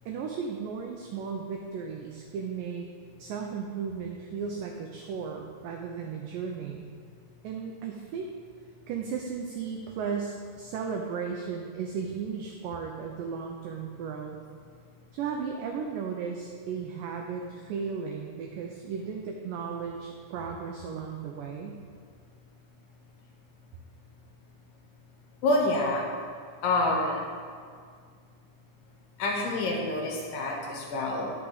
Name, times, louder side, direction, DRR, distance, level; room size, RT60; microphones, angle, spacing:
voice 1, 0.1-2.9 3.2-6.9 7.4-8.3 8.9-14.4 15.1-21.8, right 6 dB, 85° right, 2 dB, 1.9 m, -35 dB
voice 2, 25.4-26.1 26.6-27.3 29.2-31.3, left 2 dB, 75° left, -1 dB, 2.3 m, -27 dB
10.5 x 6.1 x 4.0 m, 2.1 s
omnidirectional pair, 4.6 m